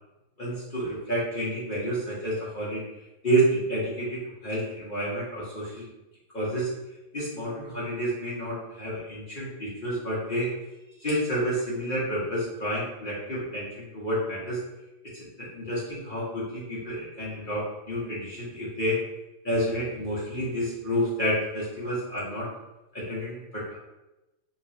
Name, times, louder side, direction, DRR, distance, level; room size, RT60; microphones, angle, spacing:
voice 1, 0.4-2.8 3.2-5.9 6.3-6.7 7.1-10.5 11.0-14.6 15.1-19.0 19.4-22.5 22.9-23.8, right 1 dB, 50° left, -8 dB, 0.5 m, -29 dB
3.3 x 3.0 x 2.7 m, 0.98 s
omnidirectional pair, 2.3 m